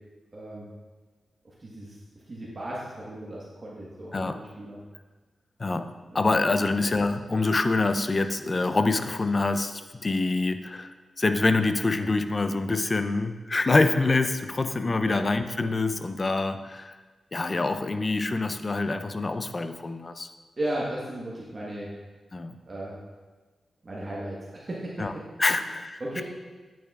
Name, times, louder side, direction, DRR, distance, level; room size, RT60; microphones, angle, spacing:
voice 1, 0.3-0.7 1.6-2.0 2.3-4.8 6.1-6.2 15.0-15.2 20.6-21.9 22.6-23.0 23.8-25.2 26.0-26.2, right 1 dB, 40° right, -6 dB, 1.3 m, -35 dB
voice 2, 5.6-16.9 17.3-20.3 22.3-22.5 25.0-25.1 25.4-26.2, left 3 dB, 40° left, 9 dB, 0.4 m, -26 dB
8.6 x 6.8 x 2.4 m, 1.3 s
cardioid pair, 60°, 0 cm